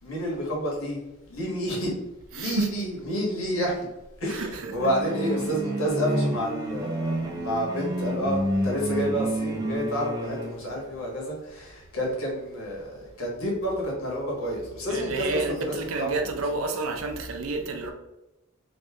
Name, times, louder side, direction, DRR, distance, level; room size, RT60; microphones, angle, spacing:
voice 1, 0.0-1.0 1.3-2.0 2.3-3.8 4.2-16.3, equal, 75° left, 1.3 m, -29 dB
voice 2, 2.3-2.8 4.3-4.9 14.9-17.9, right 3 dB, 75° right, 0.5 m, -30 dB
sound 1, 4.8-10.7, right 1 dB, 20° right, 0.4 m, -29 dB
3.1 x 2.6 x 3.5 m
head